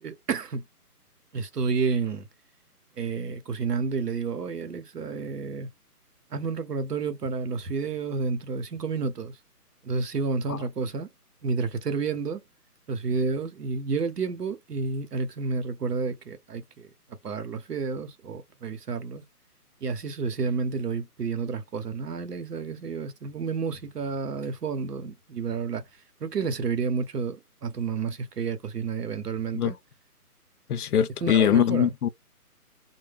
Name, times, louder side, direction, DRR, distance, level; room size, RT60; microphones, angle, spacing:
voice 1, 0.0-0.6 1.3-2.3 3.0-5.7 6.3-9.3 9.8-11.1 11.4-12.4 12.9-16.9 17.2-19.2 19.8-25.8 26.2-29.8 31.2-31.9, right 5 dB, 80° right, 0.9 m, -30 dB
voice 2, 30.7-32.1, left 9 dB, 70° left, 0.5 m, -22 dB
2.2 x 2.1 x 3.4 m
hypercardioid pair, 170°, 46 cm